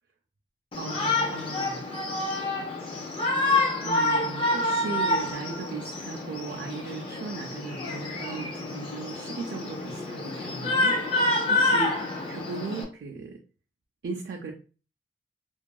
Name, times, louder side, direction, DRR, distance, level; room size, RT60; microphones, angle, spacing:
Shout, 0.7-12.8, left 2 dB, 30° left, 0.4 m, -28 dB
voice 1, 0.8-1.9 3.0-3.2 3.8-11.0 11.5-13.4 14.0-14.5, right 4 dB, 65° right, 0 dB, 0.4 m, -37 dB
2.6 x 2.3 x 2.2 m, 0.36 s
head